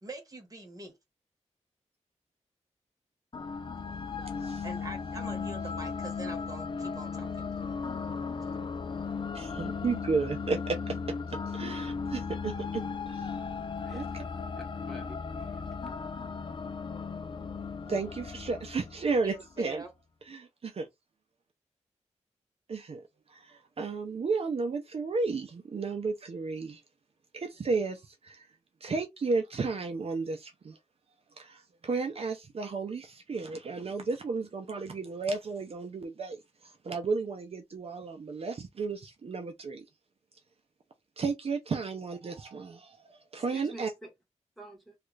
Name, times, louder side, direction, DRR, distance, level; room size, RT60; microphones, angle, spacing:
voice 1, 0.0-1.0 4.6-7.5 8.4-8.5 19.2-19.9, right 2 dB, 30° right, 1.0 m, -44 dB
sound 1, 3.3-19.5, left 5 dB, 40° left, 0.4 m, -36 dB
voice 2, 9.3-11.0 11.3-13.4 13.9-14.2 17.9-19.8 20.3-20.9 22.7-23.0 23.3-26.8 27.3-28.5 28.8-30.8 31.4-39.8 41.2-43.9, right 4 dB, 55° right, 0.6 m, -33 dB
voice 3, 14.9-15.6 43.3-44.1 44.6-44.9, right 1 dB, ahead, 1.5 m, -48 dB
3.1 x 2.4 x 3.1 m
wide cardioid pair, 95°, 12 cm